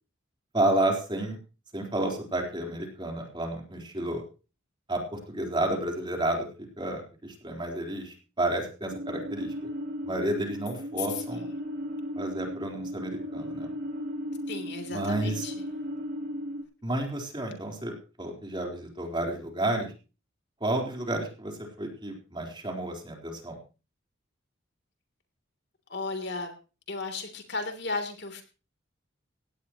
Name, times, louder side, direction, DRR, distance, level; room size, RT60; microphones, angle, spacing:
voice 1, 0.5-1.4 1.7-4.2 4.9-6.5 6.8-9.5 10.0-11.5 12.2-13.7 14.9-15.3 16.8-19.9 20.6-23.5, right 1 dB, 25° right, 1 dB, 4.1 m, -31 dB
sound 1, 8.9-16.6, equal, 55° right, 7.2 m, -36 dB
voice 2, 11.0-11.5 14.5-15.6 25.9-26.5 26.9-28.4, left 3 dB, 60° left, 5 dB, 3.3 m, -35 dB
17.5 x 17.5 x 3.1 m, 0.34 s
head